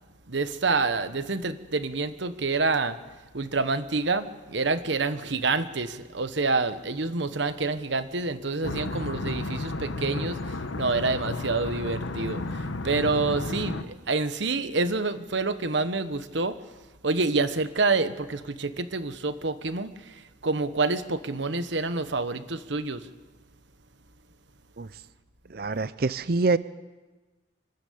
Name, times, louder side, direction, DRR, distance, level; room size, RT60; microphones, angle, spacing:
voice 1, 0.3-3.0 3.3-16.6 17.0-23.1, right 3 dB, 70° right, 12 dB, 1.1 m, -27 dB
sound 1, 8.6-13.8, left 2 dB, 85° left, 1.2 m, -32 dB
voice 2, 25.5-26.6, right 3 dB, 50° right, 16 dB, 0.6 m, -25 dB
26.0 x 13.0 x 8.5 m, 1.2 s
head